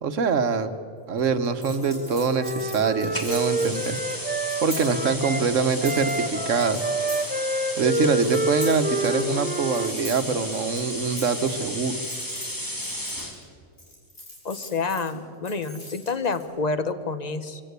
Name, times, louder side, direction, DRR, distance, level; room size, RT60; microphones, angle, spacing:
voice 1, 0.0-0.7 1.1-4.0 4.6-6.9 7.8-12.0, right 5 dB, 80° right, 9 dB, 1.4 m, -24 dB
sound 1, 1.2-5.0 5.5-6.2 6.6-7.4 7.8-9.2 9.5-11.6 12.0-13.4 13.8-15.1 15.4-16.4, left 1 dB, 85° left, 5.9 m, -42 dB
Wind instrument woodwind instrument, 1.8-5.4 5.8-9.9, right 2 dB, 10° right, 0.6 m, -28 dB
sound 2, 3.1-13.4, left 1 dB, 15° left, 2.5 m, -34 dB
voice 2, 14.4-17.6, left 4 dB, 35° left, 11 dB, 1.1 m, -28 dB
24.0 x 16.5 x 8.2 m, 2.3 s
omnidirectional pair, 1.3 m